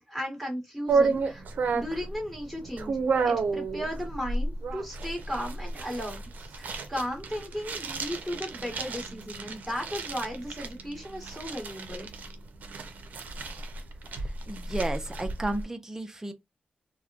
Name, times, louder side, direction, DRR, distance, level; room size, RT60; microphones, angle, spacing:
voice 1, 0.1-1.4 1.7-3.0 3.2-12.1, equal, 5° left, 1.3 m, -35 dB
sound 1, 0.9-15.6, right 4 dB, 75° right, 0.5 m, -32 dB
voice 2, 14.2-16.3, right 2 dB, 15° right, 0.5 m, -33 dB
2.9 x 2.1 x 2.4 m
cardioid pair, 75°, 3 cm